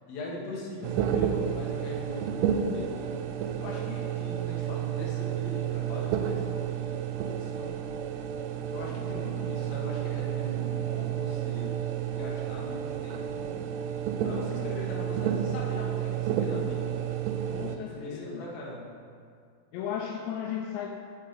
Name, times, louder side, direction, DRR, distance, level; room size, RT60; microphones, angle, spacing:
voice 1, 0.1-3.2 3.6-7.8 8.7-11.8 12.1-13.7 14.2-17.3 17.8-18.9, left 1 dB, 60° left, -4 dB, 3.1 m, -40 dB
sound 1, 0.8-17.8, right 9 dB, 85° right, 2.6 m, -31 dB
voice 2, 17.5-18.5 19.7-20.9, left 8 dB, 85° left, 0 dB, 2.9 m, -35 dB
16.0 x 5.4 x 3.8 m, 2.2 s
omnidirectional pair, 5.2 m